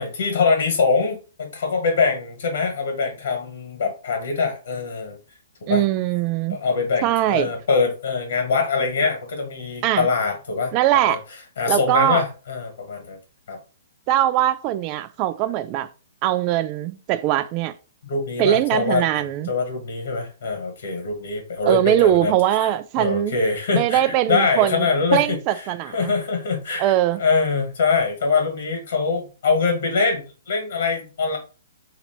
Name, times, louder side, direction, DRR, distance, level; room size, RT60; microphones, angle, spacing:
voice 1, 0.0-5.2 5.7-5.8 6.5-10.7 11.0-11.2 11.6-13.2 13.5-13.6 18.0-19.0 19.5-22.4 23.0-25.4 25.9-31.4, left 4 dB, 65° left, 1.6 m, -23 dB
voice 2, 5.7-6.6 7.0-7.5 9.8-10.1 10.7-11.2 11.7-12.2 14.1-15.9 16.2-17.7 18.4-19.5 21.7-23.4 23.7-26.1 26.8-27.2, right 12 dB, 35° right, 0.4 m, -21 dB
2.9 x 2.9 x 4.4 m
figure-of-eight pair, 120°, 0 cm